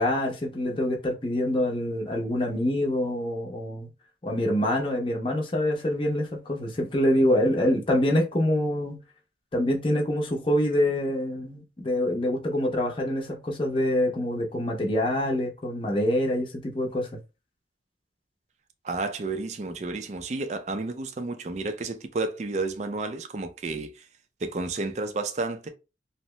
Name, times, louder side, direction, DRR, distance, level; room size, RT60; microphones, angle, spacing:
voice 1, 0.0-3.9 4.2-9.0 9.5-17.1, left 1 dB, 30° left, 0.6 m, -25 dB
voice 2, 18.8-24.1 24.4-25.7, right 3 dB, 40° right, 0.4 m, -31 dB
2.7 x 2.0 x 3.0 m
head